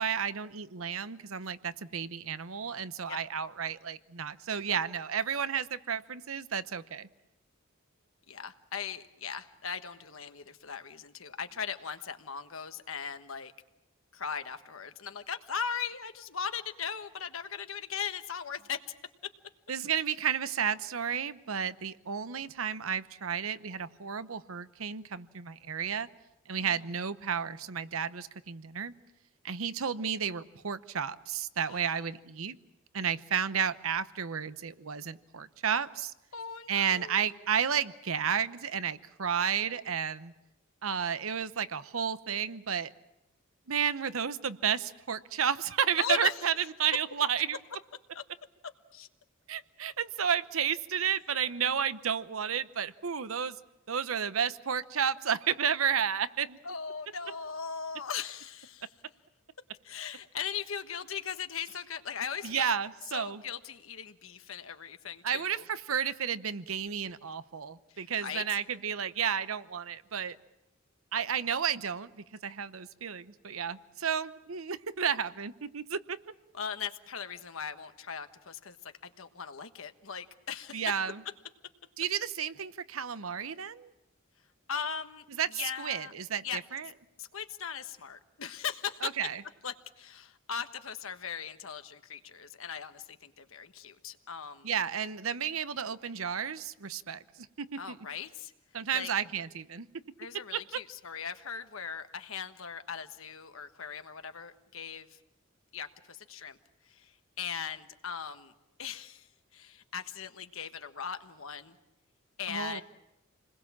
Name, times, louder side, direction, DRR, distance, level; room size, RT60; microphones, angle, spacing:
voice 1, 0.0-7.1 19.7-26.1 26.5-28.9 29.4-32.6 32.9-36.1 36.7-40.3 40.8-42.9 43.7-47.6 49.5-53.6 53.9-56.6 62.4-63.4 65.2-70.4 71.1-76.2 80.7-81.2 82.0-83.9 85.4-86.9 89.0-89.4 94.6-98.0 98.7-99.9 100.5-100.6 112.5-112.8, right 7 dB, 85° right, 14 dB, 0.9 m, -32 dB
voice 2, 8.3-13.5 14.1-18.8 26.6-26.7 31.7-31.9 36.3-37.3 46.0-46.3 48.9-49.1 56.6-58.9 59.8-62.7 63.1-65.6 67.9-68.6 76.5-78.8 79.0-80.8 84.7-85.2 85.5-86.1 86.4-86.6 87.2-89.1 89.6-94.7 97.8-98.5 98.9-99.1 100.2-105.2 105.7-106.6 106.9-108.5 108.8-109.3 109.5-111.8 112.4-112.8, left 7 dB, 80° left, 8 dB, 1.3 m, -39 dB
28.5 x 21.0 x 7.3 m, 0.91 s
head